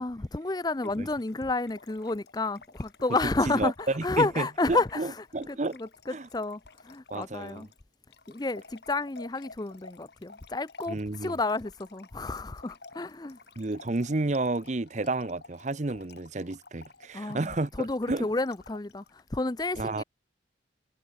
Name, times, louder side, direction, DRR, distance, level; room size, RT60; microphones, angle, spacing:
voice 1, 0.0-5.1 5.5-7.7 8.3-13.4 17.1-17.5 17.8-20.0, left 3 dB, 20° left, 0.6 m, -31 dB
Trickle dribble / Fill (with liquid), 0.7-19.2, left 3 dB, 60° left, 2.0 m, -52 dB
voice 2, 3.5-5.8 6.1-6.3 7.1-7.7 10.9-11.4 13.6-18.3 19.8-20.0, right 2 dB, 40° right, 0.7 m, -31 dB
head